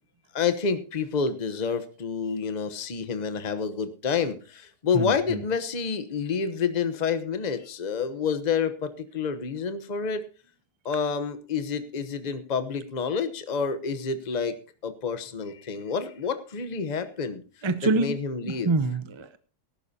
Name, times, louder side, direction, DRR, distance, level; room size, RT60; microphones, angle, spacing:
voice 1, 0.3-10.2 10.8-14.6 14.8-17.4 18.0-18.7, left 6 dB, 30° left, 10 dB, 1.0 m, -28 dB
voice 2, 4.9-5.4 17.6-18.1 18.4-19.4, right 3 dB, 30° right, 12 dB, 0.5 m, -26 dB
18.5 x 11.5 x 2.8 m, 0.36 s
omnidirectional pair, 1.7 m